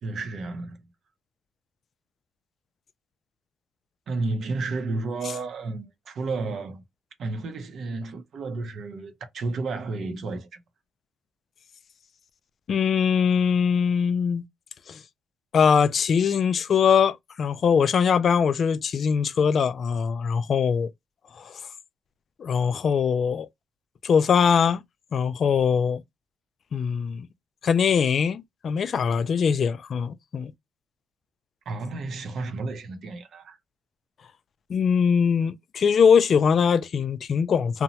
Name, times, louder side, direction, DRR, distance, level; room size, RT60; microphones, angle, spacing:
voice 1, 0.0-0.9 4.1-6.8 7.2-10.6 31.7-33.6, right 3 dB, 65° right, 0.6 m, -32 dB
voice 2, 12.7-14.4 14.9-15.0 15.5-20.9 21.4-21.5 22.4-23.5 24.0-24.8 25.1-26.0 26.7-27.3 27.6-30.5 34.7-37.8, left 6 dB, 55° left, 0.3 m, -22 dB
2.8 x 2.0 x 2.7 m
cardioid pair, 90°, 0 cm